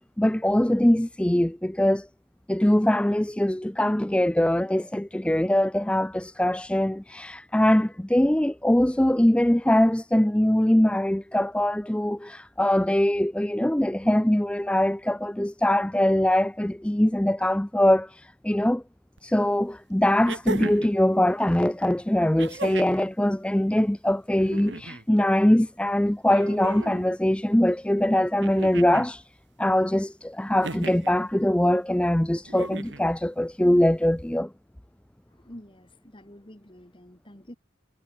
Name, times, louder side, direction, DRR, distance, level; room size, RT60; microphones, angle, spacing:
voice 1, 0.0-2.1 2.5-18.8 19.2-29.3 29.6-34.5, left 1 dB, 5° left, 0.4 m, -22 dB
sound 1, 19.2-19.3 20.2-21.0 22.4-23.0 24.3-25.0 26.3-27.1 28.4-29.1 30.6-31.1 32.5-33.1 34.4-34.5, right 3 dB, 65° right, 1.7 m, -36 dB
voice 2, 35.3-37.6, equal, 25° left, 2.7 m, -47 dB
head